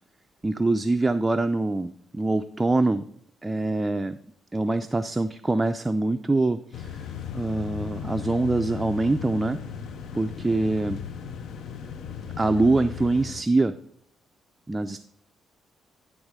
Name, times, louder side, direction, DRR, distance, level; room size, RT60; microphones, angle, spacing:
voice 1, 0.4-3.0 3.4-4.2 4.5-7.1 7.3-9.6 10.1-11.0 12.4-13.7 14.7-15.1, right 2 dB, 20° right, 8 dB, 0.3 m, -24 dB
sound 1, 6.7-13.4, left 8 dB, 70° left, 0.5 m, -37 dB
10.5 x 3.6 x 4.8 m, 0.66 s
cardioid pair, 90°, 0 cm